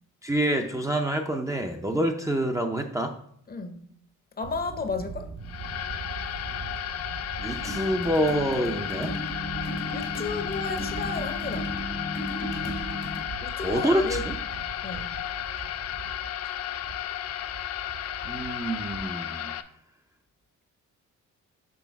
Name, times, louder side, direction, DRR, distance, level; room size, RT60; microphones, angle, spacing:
voice 1, 0.2-3.2 7.4-9.2 13.6-14.4 18.2-19.6, right 1 dB, 10° right, 0.5 m, -27 dB
voice 2, 3.5-3.9 4.4-5.3 9.9-11.7 13.4-14.3 14.8-15.2, left 4 dB, 30° left, 0.8 m, -33 dB
Fowl / Bird, 4.4-19.1, right 5 dB, 50° right, 1.3 m, -41 dB
sound 1, 5.4-19.6, left 11 dB, 55° left, 0.4 m, -34 dB
sound 2, 7.5-13.2, left 1 dB, 85° left, 1.8 m, -35 dB
6.3 x 3.1 x 5.8 m
cardioid pair, 90°, 30 cm